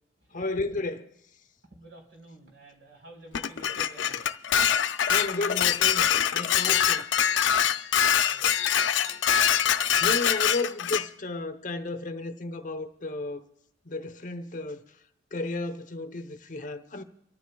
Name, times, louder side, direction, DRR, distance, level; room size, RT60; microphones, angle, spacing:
voice 1, 0.3-1.1 5.1-7.0 9.3-13.4 13.8-14.9 15.3-17.0, left 2 dB, 45° left, 0.8 m, -33 dB
voice 2, 1.6-4.3 4.7-4.8 5.2-5.3 7.6-7.7 8.0-8.5, right 1 dB, 75° right, 4.0 m, -51 dB
Dishes pots and pans, 3.3-11.1, left 9 dB, 90° left, 0.4 m, -24 dB
29.5 x 13.0 x 2.3 m
head